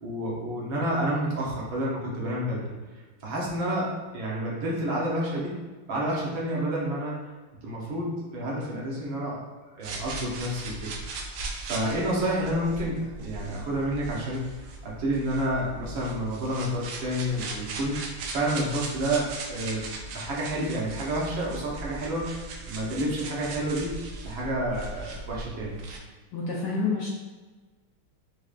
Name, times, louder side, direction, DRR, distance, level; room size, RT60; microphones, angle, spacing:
voice 1, 0.0-2.7 3.2-5.5 5.9-7.2 7.6-9.4 9.7-10.9 11.6-14.5 14.8-18.0 18.3-19.9 20.1-23.9 24.2-25.8, right 1 dB, 70° right, -5 dB, 1.6 m, -29 dB
sound 1, 9.8-26.0, right 3 dB, 85° right, 1.5 m, -39 dB
voice 2, 26.3-27.1, left 4 dB, 75° left, -5 dB, 1.0 m, -28 dB
4.8 x 2.3 x 2.4 m, 1.3 s
omnidirectional pair, 2.3 m